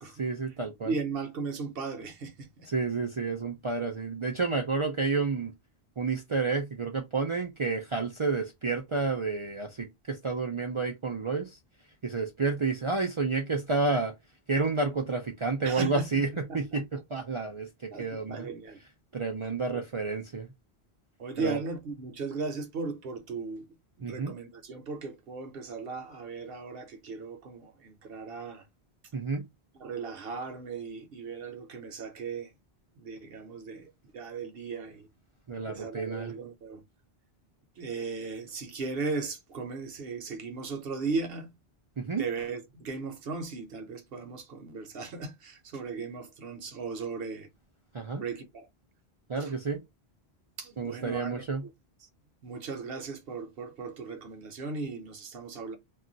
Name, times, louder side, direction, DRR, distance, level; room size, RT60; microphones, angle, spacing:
voice 1, 0.2-0.9 2.7-5.5 6.0-11.6 12.0-14.1 14.5-18.5 19.1-20.5 21.4-21.6 24.0-24.3 29.1-29.5 35.5-36.3 42.0-42.2 47.9-48.2 49.3-49.8 50.8-51.6, right 4 dB, 40° right, 0.4 m, -30 dB
voice 2, 0.8-2.7 15.6-16.0 16.5-16.8 17.9-18.8 19.7-19.8 21.2-23.7 24.0-28.7 29.8-32.5 33.0-35.1 35.5-36.8 37.8-41.5 42.2-47.5 48.1-48.6 49.4-49.5 50.6-51.7 52.0-52.1 52.4-55.8, right 4 dB, 65° right, 0.9 m, -37 dB
2.4 x 2.2 x 3.8 m
omnidirectional pair, 1.1 m